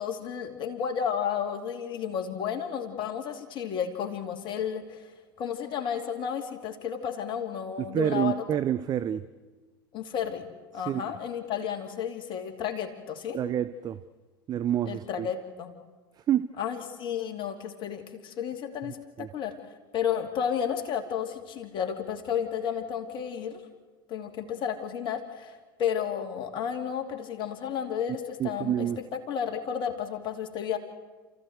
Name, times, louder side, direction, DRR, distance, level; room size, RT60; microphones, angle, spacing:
voice 1, 0.0-5.1 5.4-8.4 9.9-10.5 10.7-13.4 14.9-15.7 16.6-19.6 19.9-23.6 24.1-30.8, left 8 dB, 45° left, 4 dB, 2.7 m, -32 dB
voice 2, 7.9-9.2 10.9-11.0 13.3-14.0 14.5-15.3 16.3-16.5 19.2-19.3 28.4-29.0, right 10 dB, 35° right, 13 dB, 0.7 m, -28 dB
29.0 x 14.5 x 8.0 m, 1.3 s
hypercardioid pair, 80°, 12 cm